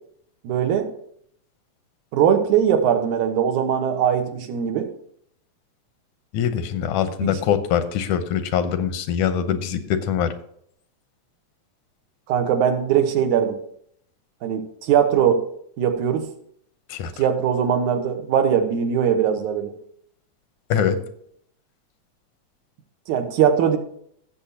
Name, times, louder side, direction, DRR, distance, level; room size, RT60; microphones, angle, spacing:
voice 1, 0.4-0.9 2.1-4.9 7.2-7.3 12.3-13.6 14.4-15.4 15.8-16.3 17.2-19.7 23.1-23.8, right 8 dB, 85° right, 6 dB, 2.5 m, -20 dB
voice 2, 6.3-10.3 16.9-17.1 20.7-21.0, left 8 dB, 85° left, 10 dB, 2.2 m, -23 dB
16.0 x 7.1 x 2.8 m, 0.67 s
omnidirectional pair, 3.4 m